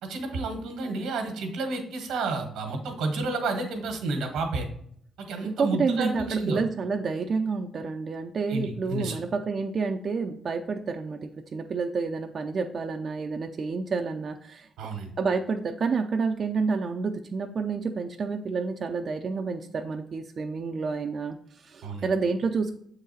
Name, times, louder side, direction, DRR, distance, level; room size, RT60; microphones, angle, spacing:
voice 1, 0.0-4.7 5.2-6.6 8.5-9.2 14.8-15.1 21.8-22.1, right 3 dB, 85° right, 4 dB, 1.4 m, -31 dB
voice 2, 5.4-14.7 15.2-22.7, right 4 dB, 45° right, 4 dB, 0.5 m, -29 dB
7.1 x 3.9 x 4.1 m, 0.66 s
cardioid pair, 90°, 0 cm